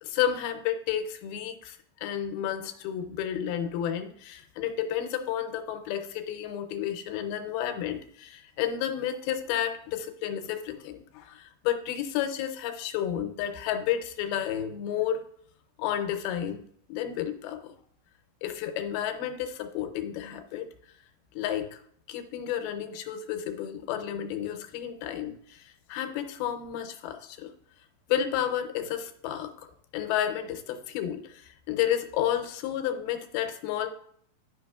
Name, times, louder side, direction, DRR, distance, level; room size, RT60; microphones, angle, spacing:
voice 1, 0.0-15.2 15.8-16.6 16.9-17.7 18.4-20.7 21.3-21.8 22.1-27.5 28.1-29.7 29.9-33.9, left 10 dB, 85° left, 6 dB, 2.6 m, -31 dB
11.5 x 5.4 x 2.3 m, 0.63 s
omnidirectional pair, 4.3 m